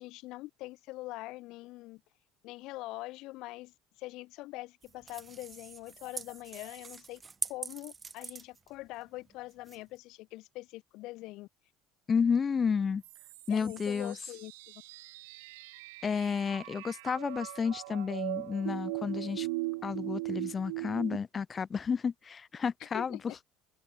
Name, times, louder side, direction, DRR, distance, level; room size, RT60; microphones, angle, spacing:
voice 1, 0.0-2.0 2.4-7.2 7.5-11.5 13.5-14.8 22.9-23.5, left 19 dB, 65° left, 4.8 m, -43 dB
sound 1, 4.8-10.0, right 5 dB, 25° right, 0.6 m, -43 dB
voice 2, 12.1-13.0 13.5-14.2 16.0-19.5 19.8-23.2, left 6 dB, 30° left, 0.4 m, -31 dB
sound 2, 13.0-21.2, right 23 dB, 85° right, 0.5 m, -39 dB
open air
supercardioid pair, 95°, 0 cm